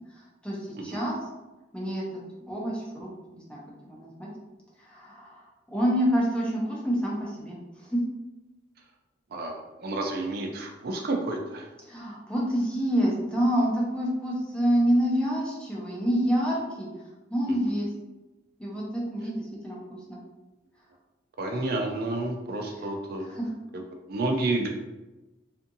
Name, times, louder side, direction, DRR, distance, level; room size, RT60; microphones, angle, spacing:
voice 1, 0.4-1.2 1.7-2.2 2.5-4.3 4.8-5.4 5.7-7.6 7.8-8.0 11.9-16.9 17.3-17.9 18.6-20.2 21.5-21.6 22.8-22.9 23.2-23.5, equal, 5° left, -5 dB, 0.6 m, -27 dB
voice 2, 9.8-11.7 21.4-23.4 24.1-24.7, right 2 dB, 55° right, 2 dB, 0.4 m, -30 dB
2.6 x 2.5 x 2.6 m, 1.1 s
head